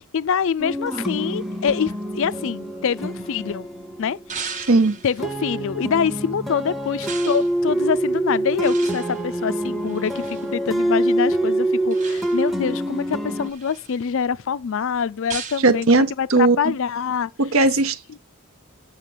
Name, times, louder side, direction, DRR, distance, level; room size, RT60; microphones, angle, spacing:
voice 1, 0.1-3.7 4.0-4.7 5.0-17.3, left 7 dB, 60° left, 0.4 m, -25 dB
sound 1, 0.6-4.6 5.2-13.5, right 1 dB, ahead, 0.8 m, -25 dB
sound 2, 0.9-3.5 4.3-5.3 7.0-7.5 8.6-10.5 11.9-12.6 13.1-14.0 15.3-15.7, right 6 dB, 35° right, 1.0 m, -37 dB
voice 2, 4.7-5.0 15.6-16.7 17.4-18.2, right 3 dB, 65° right, 0.8 m, -18 dB
7.5 x 5.9 x 6.7 m
head